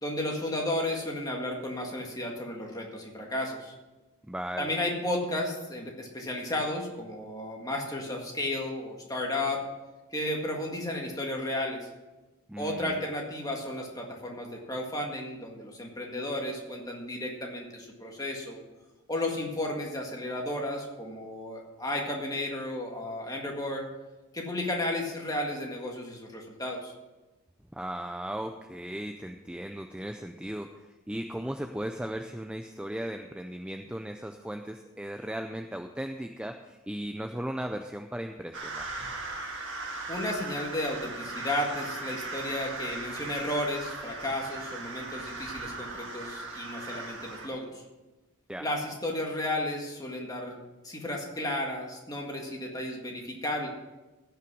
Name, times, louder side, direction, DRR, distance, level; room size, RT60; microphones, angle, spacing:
voice 1, 0.0-3.7 4.6-9.6 10.1-11.8 12.6-18.6 19.1-23.8 24.3-26.9 40.1-47.8 48.6-50.6 50.8-53.7, left 1 dB, 15° left, 0 dB, 1.8 m, -33 dB
voice 2, 4.2-4.7 12.5-12.9 27.7-38.9 48.5-48.7, right 1 dB, 5° right, 5 dB, 0.4 m, -37 dB
sound 1, 38.5-47.5, right 3 dB, 55° right, 1.8 m, -38 dB
15.5 x 5.8 x 6.2 m, 1.1 s
head